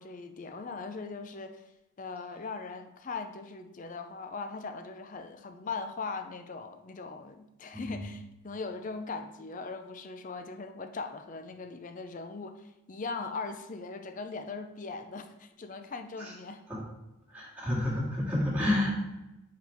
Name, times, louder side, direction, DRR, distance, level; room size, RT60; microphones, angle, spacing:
voice 1, 0.0-1.6 2.0-16.6, left 4 dB, 35° left, 8 dB, 0.4 m, -40 dB
voice 2, 7.7-8.0 16.2-16.3 16.7-16.8 17.3-18.9, left 1 dB, 10° right, -6 dB, 2.0 m, -30 dB
5.1 x 4.8 x 4.5 m, 0.97 s
head